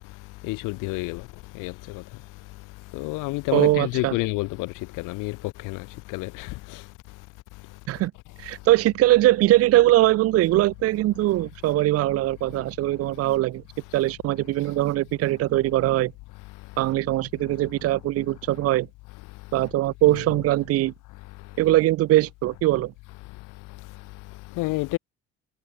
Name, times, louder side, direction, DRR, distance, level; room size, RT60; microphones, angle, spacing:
voice 1, 0.4-1.2 1.6-1.7 2.9-5.4 5.6-5.8 6.1-6.5 20.1-20.2 24.6-25.0, left 22 dB, 75° left, 5.4 m, -28 dB
voice 2, 3.5-4.1 7.9-8.1 8.4-13.6 13.9-16.1 16.8-18.9 19.5-20.9 21.6-22.9, right 16 dB, 50° right, 1.3 m, -21 dB
cardioid pair, 175°, 32 cm